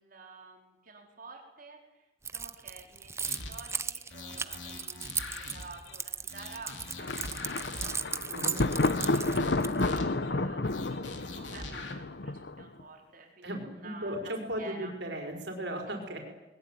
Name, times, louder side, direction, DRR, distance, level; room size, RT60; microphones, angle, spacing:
voice 1, 0.0-8.8 9.1-14.9 15.9-16.0, right 3 dB, 50° right, 1 dB, 4.5 m, -50 dB
Keys jangling, 2.3-10.0, right 5 dB, 15° right, 0.7 m, -36 dB
sound 1, 3.3-3.8 4.1-6.0 6.3-8.1 8.5-10.3 10.6-11.9, left 2 dB, 85° left, 3.9 m, -44 dB
Thunder, 7.0-12.8, left 2 dB, 65° left, 0.9 m, -31 dB
voice 2, 13.4-16.2, right 1 dB, 70° right, 2 dB, 5.1 m, -36 dB
21.5 x 21.0 x 9.3 m, 1.1 s
head